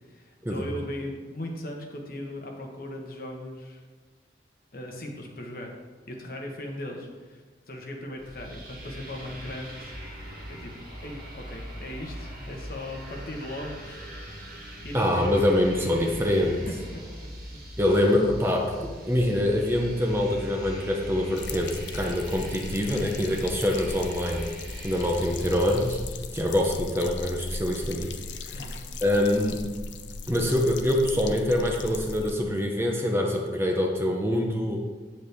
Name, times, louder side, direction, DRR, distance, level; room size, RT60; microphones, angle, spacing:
voice 1, 0.1-3.8 4.7-5.7 6.1-9.9 10.5-10.7 11.0-14.6 14.8-15.3 16.4-17.6 28.5-28.9, left 1 dB, 50° left, 1 dB, 1.2 m, -38 dB
sound 1, 8.2-26.0, equal, 50° right, 1.6 m, -41 dB
voice 2, 14.9-16.6 17.8-24.5 24.8-26.0 26.3-28.1 28.4-28.7 29.0-29.7 30.3-34.8, left 1 dB, 15° right, 1 dB, 0.7 m, -25 dB
sound 2, 21.4-32.3, left 3 dB, 85° left, 0.5 m, -38 dB
8.0 x 7.2 x 3.5 m, 1.4 s
head